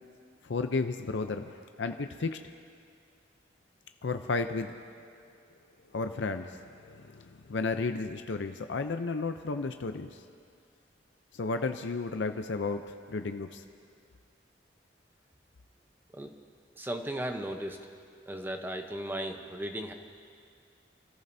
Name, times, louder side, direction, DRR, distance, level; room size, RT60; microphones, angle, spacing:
voice 1, 0.4-2.4 4.0-4.7 5.9-10.1 11.3-13.6, left 3 dB, 70° left, 7 dB, 0.5 m, -33 dB
voice 2, 16.7-17.8 18.3-19.9, right 1 dB, 10° right, 5 dB, 0.8 m, -36 dB
28.0 x 14.5 x 2.7 m, 2.3 s
head